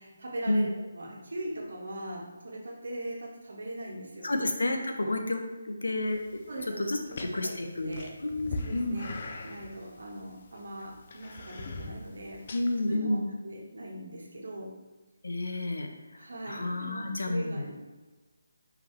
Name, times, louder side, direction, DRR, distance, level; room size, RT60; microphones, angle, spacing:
voice 1, 0.0-4.3 6.5-8.2 8.6-9.1 9.4-14.7 16.1-17.8, right 1 dB, 70° right, -2 dB, 1.8 m, -40 dB
voice 2, 4.2-6.4 6.8-9.0 12.5-13.3 15.2-15.9 16.5-17.7, left 1 dB, 85° left, 4 dB, 1.0 m, -30 dB
sound 1, 6.1-13.0, left 2 dB, 35° left, 0.6 m, -42 dB
5.6 x 5.4 x 3.4 m, 1.2 s
hypercardioid pair, 170°, 0 cm